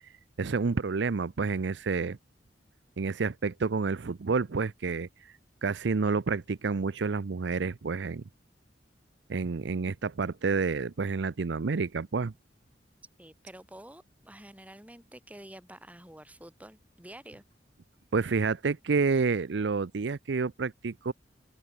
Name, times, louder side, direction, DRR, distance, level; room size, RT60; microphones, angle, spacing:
voice 1, 0.4-2.2 3.0-5.3 5.6-8.2 9.3-12.3 18.1-21.1, right 4 dB, 70° right, 0.6 m, -29 dB
voice 2, 13.2-17.4, right 1 dB, 10° right, 5.2 m, -49 dB
open air
head